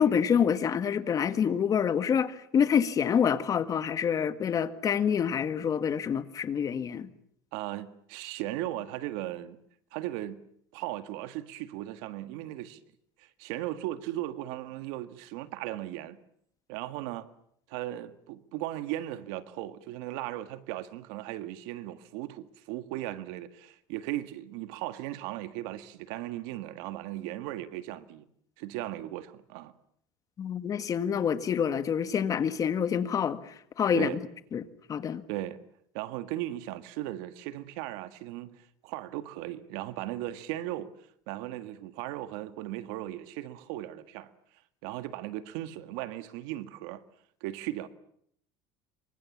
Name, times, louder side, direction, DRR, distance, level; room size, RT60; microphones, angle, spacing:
voice 1, 0.0-7.1 30.4-34.1 34.5-34.6 34.9-35.2, left 7 dB, 35° left, 1.7 m, -27 dB
voice 2, 7.5-9.6 9.9-10.4 10.7-12.8 13.2-16.2 16.7-17.3 17.7-28.3 28.6-29.7 33.9-34.2 35.3-35.6 35.9-40.9 41.3-44.3 44.8-47.0 47.4-47.9, right 14 dB, 80° right, 1.8 m, -37 dB
27.0 x 24.5 x 7.4 m
cardioid pair, 135°, 11 cm